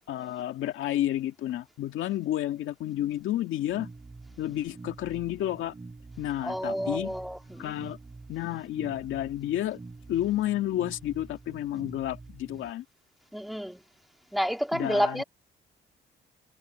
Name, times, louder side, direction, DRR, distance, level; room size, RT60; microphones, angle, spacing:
voice 1, 0.0-3.9 4.3-5.8 6.2-7.1 7.6-8.0 8.3-9.8 10.1-12.8 14.7-15.2, left 13 dB, 80° left, 2.1 m, -31 dB
sound 1, 3.7-12.7, right 3 dB, 25° right, 5.3 m, -47 dB
voice 2, 6.4-7.7 13.3-13.8 14.3-15.2, equal, ahead, 2.6 m, -29 dB
cardioid pair, 90°, 20 cm